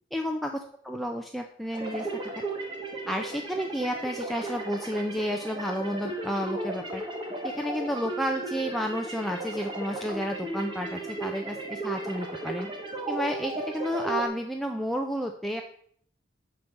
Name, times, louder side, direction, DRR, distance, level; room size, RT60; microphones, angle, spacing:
voice 1, 0.1-0.5 0.8-2.1 3.1-7.0 7.4-12.7 13.1-15.6, equal, ahead, 3 dB, 0.4 m, -31 dB
sound 1, 1.7-14.3, right 2 dB, 25° right, 1.1 m, -35 dB
5.9 x 4.6 x 6.3 m, 0.62 s
head